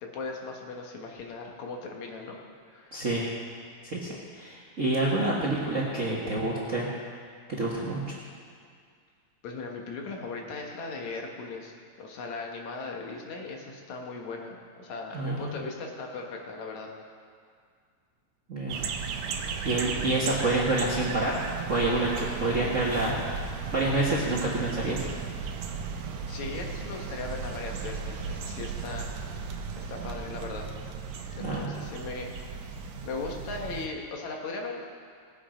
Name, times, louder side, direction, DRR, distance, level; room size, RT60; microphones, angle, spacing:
voice 1, 0.0-2.4 2.7-3.0 4.1-4.2 9.4-16.9 26.3-29.1 29.8-30.7 31.3-32.3 33.0-34.8, left 3 dB, 75° left, 1 dB, 2.6 m, -38 dB
voice 2, 2.9-3.3 3.8-6.9 7.5-8.2 15.1-15.6 18.5-18.8 19.6-21.4 21.7-23.2 23.7-25.1 31.4-31.8, right 2 dB, 40° right, -6 dB, 1.2 m, -28 dB
sound 1, 18.7-33.9, right 5 dB, 75° right, 2.1 m, -36 dB
19.0 x 7.3 x 5.1 m, 2.1 s
omnidirectional pair, 3.3 m